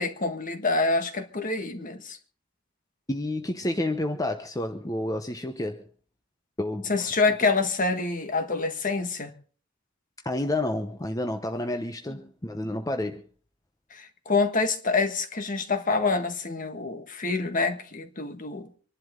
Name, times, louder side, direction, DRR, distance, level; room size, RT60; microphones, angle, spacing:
voice 1, 0.0-2.2 6.9-9.3 13.9-18.7, left 3 dB, 45° left, 1.6 m, -26 dB
voice 2, 3.1-5.9 6.6-7.1 10.2-13.3, left 1 dB, 20° left, 0.9 m, -30 dB
25.5 x 11.5 x 3.8 m
head